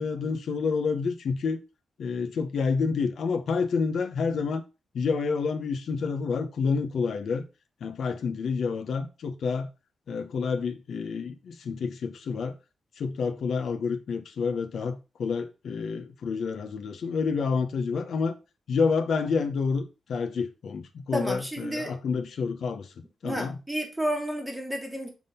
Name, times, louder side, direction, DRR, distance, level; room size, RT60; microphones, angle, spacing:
voice 1, 0.0-1.6 2.0-4.6 4.9-7.4 7.8-9.7 10.1-12.5 13.0-18.3 18.7-22.9 23.2-23.5, left 5 dB, 65° left, 0.8 m, -28 dB
voice 2, 21.1-21.9 23.2-25.1, equal, 5° right, 1.4 m, -31 dB
6.0 x 3.6 x 5.5 m
wide cardioid pair, 150°, 0 cm